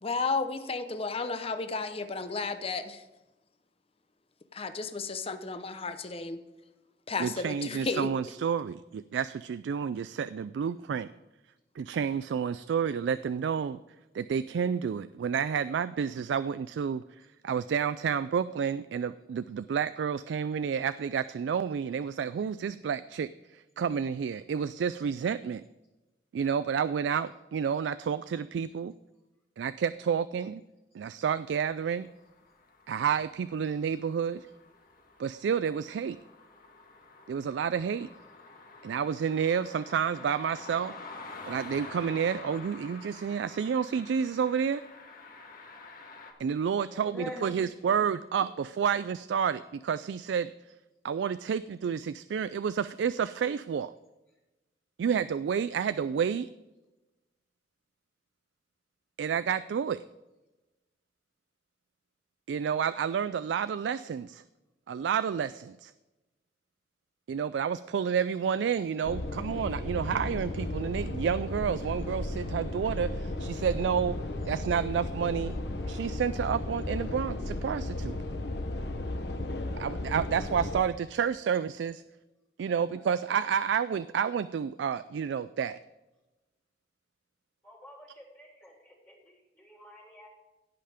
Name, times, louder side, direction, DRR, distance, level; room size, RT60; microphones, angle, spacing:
voice 1, 0.0-3.0 4.5-6.4 7.1-8.1, left 4 dB, 35° left, 9 dB, 0.8 m, -33 dB
voice 2, 7.2-11.1 11.8-13.8 14.1-17.0 17.4-25.6 26.3-28.9 29.6-30.6 30.9-32.1 32.9-34.5 35.2-36.2 37.3-38.1 38.8-40.9 41.4-44.8 46.4-50.5 51.0-53.9 55.0-56.5 59.2-60.0 62.5-64.4 64.9-65.9 67.3-74.2 74.5-75.6 75.9-78.2 79.7-82.0 82.6-85.8, right 7 dB, 80° right, 14 dB, 0.3 m, -30 dB
sound 1, 31.7-46.3, left 3 dB, 50° left, 1.6 m, -48 dB
voice 3, 46.9-47.6 82.7-83.1 87.6-90.3, left 1 dB, 15° left, -4 dB, 1.9 m, -46 dB
sound 2, 69.0-80.8, left 2 dB, 70° left, 1.0 m, -35 dB
17.0 x 5.7 x 5.0 m, 1.0 s
head